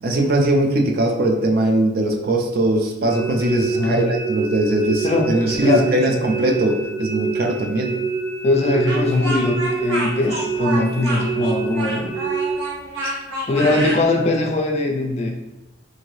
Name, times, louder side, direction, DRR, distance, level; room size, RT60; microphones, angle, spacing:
voice 1, 0.0-8.0, right 1 dB, 50° right, 2 dB, 0.4 m, -20 dB
sound 1, 3.1-12.5, right 4 dB, 10° right, 1.5 m, -27 dB
voice 2, 3.7-4.0 5.0-6.2 8.4-12.1 13.5-15.3, left 2 dB, 30° left, 2 dB, 0.3 m, -20 dB
Speech, 8.9-14.0, right 2 dB, 65° right, 0.8 m, -28 dB
2.7 x 2.6 x 3.1 m, 0.98 s
head